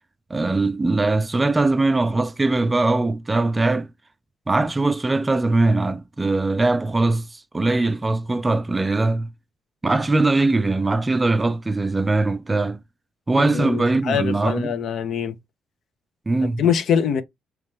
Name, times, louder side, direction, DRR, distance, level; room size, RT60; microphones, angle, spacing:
voice 1, 0.3-3.9 4.5-9.3 9.8-12.8 13.3-14.7 16.3-16.6, right 2 dB, 20° right, 0.3 m, -21 dB
voice 2, 13.4-15.4 16.6-17.2, left 7 dB, 65° left, 0.6 m, -23 dB
3.1 x 3.1 x 3.4 m
cardioid pair, 90°, 0 cm